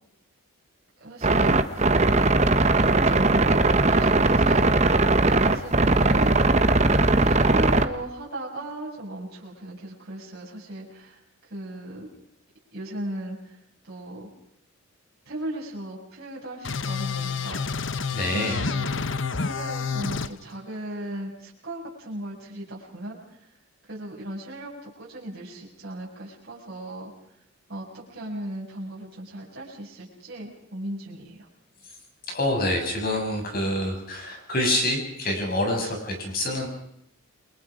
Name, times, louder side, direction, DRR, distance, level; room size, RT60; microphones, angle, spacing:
voice 1, 1.0-2.2 2.8-4.7 5.2-6.4 7.1-12.1 12.7-13.6 13.8-14.3 15.2-17.6 18.3-18.9 19.4-23.5 23.8-27.1 27.7-31.5, right 1 dB, 45° right, -5 dB, 6.7 m, -37 dB
sound 1, 1.2-7.9, right 2 dB, 30° right, 1.1 m, -19 dB
sound 2, 16.6-20.3, left 5 dB, 55° left, 0.9 m, -29 dB
voice 2, 18.1-18.6 32.3-36.7, left 1 dB, 40° left, 3 dB, 6.8 m, -26 dB
29.5 x 23.0 x 5.0 m, 0.74 s
head